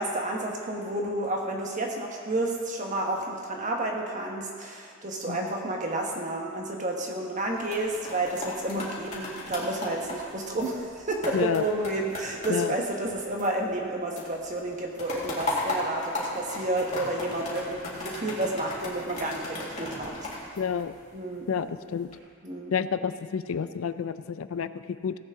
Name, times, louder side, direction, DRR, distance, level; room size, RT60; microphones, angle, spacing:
voice 1, 0.0-20.1 21.1-21.8 22.4-22.7, right 2 dB, 35° right, 0 dB, 1.4 m, -31 dB
sound 1, 7.4-13.9 14.2-21.3 21.8-22.2, left 2 dB, 35° left, 2.2 m, -36 dB
voice 2, 11.3-11.6 12.5-12.7 20.6-20.9 21.5-22.1 22.7-25.2, left 7 dB, 80° left, 13 dB, 0.4 m, -29 dB
17.0 x 8.4 x 3.7 m, 2.2 s
head